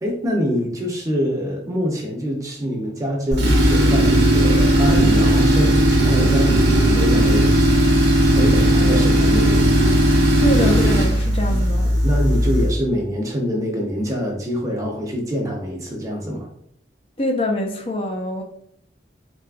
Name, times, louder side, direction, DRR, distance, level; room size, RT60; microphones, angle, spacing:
voice 1, 0.0-7.6 8.4-9.7 11.5-11.6 12.0-16.5, equal, 15° right, -1 dB, 0.6 m, -25 dB
Tools, 3.3-12.8, right 1 dB, 70° right, 0.8 m, -16 dB
voice 2, 10.4-11.9 17.2-18.4, equal, 30° left, 3 dB, 0.5 m, -24 dB
3.8 x 2.3 x 2.4 m, 0.68 s
head